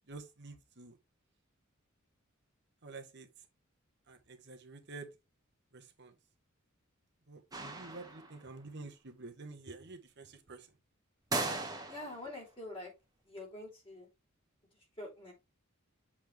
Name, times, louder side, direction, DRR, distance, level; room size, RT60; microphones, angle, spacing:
voice 1, 0.1-1.0 2.8-3.3 4.1-5.1 5.7-6.1 7.3-10.7, right 3 dB, 55° right, 1.3 m, -49 dB
sound 1, 7.5-8.5 11.3-12.3, right 2 dB, 20° right, 1.4 m, -37 dB
voice 2, 11.9-12.9 13.3-14.1 15.0-15.3, left 1 dB, 25° left, 3.2 m, -45 dB
7.4 x 4.3 x 3.5 m
head